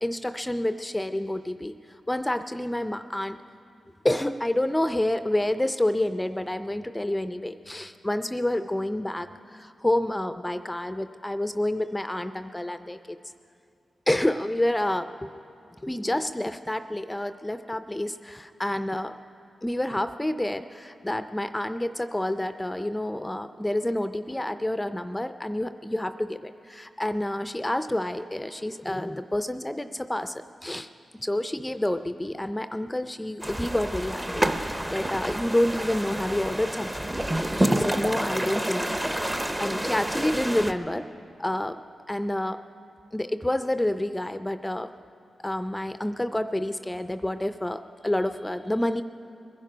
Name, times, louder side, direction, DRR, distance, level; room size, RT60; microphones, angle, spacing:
voice 1, 0.0-1.7 2.1-3.4 4.0-13.2 14.1-15.3 15.8-19.1 19.6-30.9 31.2-37.2 37.6-38.9 39.2-41.1 41.4-41.8 42.1-42.6 43.1-44.9 45.4-49.0, left 1 dB, 10° left, 10 dB, 0.4 m, -28 dB
sound 1, 33.4-40.7, right 1 dB, 15° right, 0.7 m, -28 dB
21.0 x 11.0 x 5.0 m, 2.5 s
cardioid pair, 60°, 0 cm